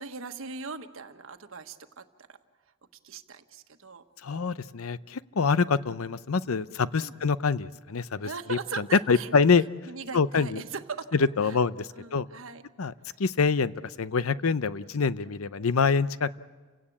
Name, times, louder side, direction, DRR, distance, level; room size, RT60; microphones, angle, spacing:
voice 1, 0.0-2.4 3.0-4.0 7.0-7.1 8.2-9.3 9.9-11.1 11.4-11.6 12.0-12.6 14.8-15.4, right 4 dB, 70° right, 8 dB, 1.3 m, -39 dB
voice 2, 4.2-9.6 10.1-10.6 11.1-12.3 12.8-12.9 13.2-16.4, left 5 dB, 80° left, 16 dB, 0.6 m, -25 dB
30.0 x 17.0 x 8.6 m, 1.4 s
head